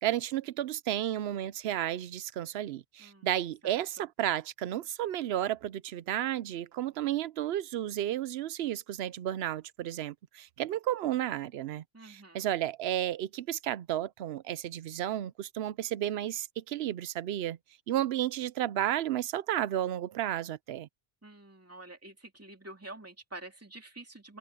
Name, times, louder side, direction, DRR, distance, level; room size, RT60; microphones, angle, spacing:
voice 1, 0.0-17.6 17.9-20.9, right 12 dB, 80° right, 0.8 m, -32 dB
voice 2, 11.9-12.5 21.2-24.4, right 2 dB, 15° right, 2.5 m, -48 dB
omnidirectional pair, 1.0 m